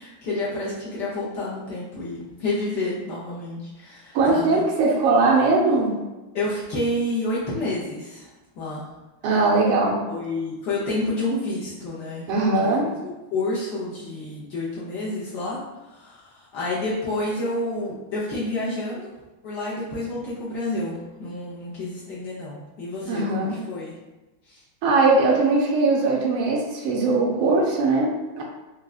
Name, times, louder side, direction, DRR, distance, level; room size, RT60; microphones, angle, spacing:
voice 1, 0.0-4.6 6.3-8.9 10.1-12.3 12.6-13.0 13.3-19.1 19.4-24.0 24.4-24.6, left 2 dB, 65° left, -8 dB, 1.1 m, -29 dB
voice 2, 4.1-6.0 9.2-10.0 12.3-12.9 23.1-23.6 24.8-28.4, right 3 dB, 80° right, -2 dB, 1.5 m, -20 dB
4.7 x 2.2 x 2.3 m, 1.1 s
omnidirectional pair, 2.4 m